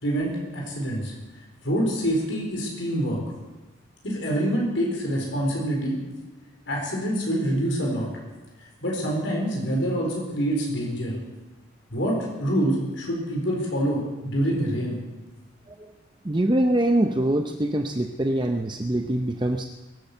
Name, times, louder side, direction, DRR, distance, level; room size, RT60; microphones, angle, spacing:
voice 1, 0.0-1.1 1.6-3.2 4.0-6.0 6.7-8.1 8.8-11.2 11.9-15.0, equal, 70° left, -1 dB, 4.3 m, -26 dB
voice 2, 16.2-19.7, right 1 dB, 25° right, 5 dB, 0.6 m, -23 dB
22.5 x 8.9 x 6.7 m, 1.1 s
head